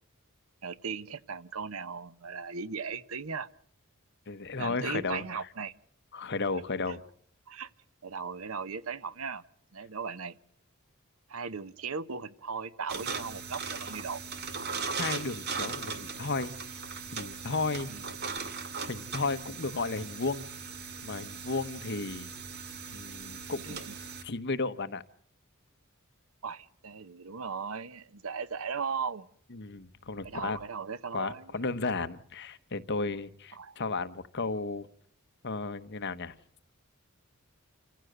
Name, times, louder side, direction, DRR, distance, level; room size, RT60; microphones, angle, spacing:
voice 1, 0.6-3.5 4.6-5.7 6.9-7.0 7.5-7.7 8.0-9.4 9.7-10.3 11.3-14.2 17.9-18.0 23.6-23.9 26.4-29.3 30.2-31.5 33.5-33.8, right 5 dB, 65° right, 0.9 m, -37 dB
voice 2, 4.3-5.2 6.1-7.0 15.0-16.5 17.1-17.9 18.9-20.5 21.0-22.3 22.9-23.8 24.2-25.0 29.5-30.6 31.1-34.9 35.4-36.4, left 3 dB, 50° left, 1.0 m, -34 dB
sound 1, 12.9-24.2, right 5 dB, 50° right, 2.1 m, -39 dB
28.0 x 15.0 x 7.9 m
head